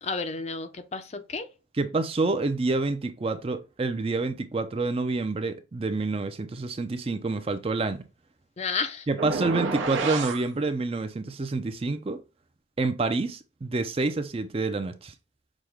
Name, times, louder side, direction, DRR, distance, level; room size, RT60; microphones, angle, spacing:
voice 1, 0.0-1.5 8.6-9.1, left 4 dB, 35° left, 0.4 m, -31 dB
voice 2, 1.8-8.1 9.1-12.2 12.8-15.1, right 3 dB, 30° right, 0.4 m, -28 dB
sound 1, 9.2-10.4, right 4 dB, 85° right, 0.8 m, -29 dB
6.1 x 2.1 x 3.4 m
head